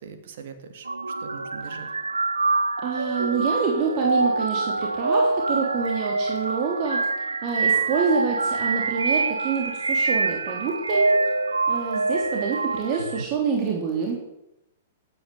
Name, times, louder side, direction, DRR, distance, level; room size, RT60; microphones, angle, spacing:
voice 1, 0.0-0.9 1.2-1.9, right 6 dB, 60° right, 7 dB, 2.5 m, -41 dB
sound 1, 0.9-13.3, right 3 dB, 85° right, 0.9 m, -25 dB
voice 2, 2.8-11.1 11.7-14.2, right 6 dB, 40° right, 1 dB, 3.3 m, -27 dB
17.5 x 9.9 x 7.3 m, 0.85 s
figure-of-eight pair, 110°, 0 cm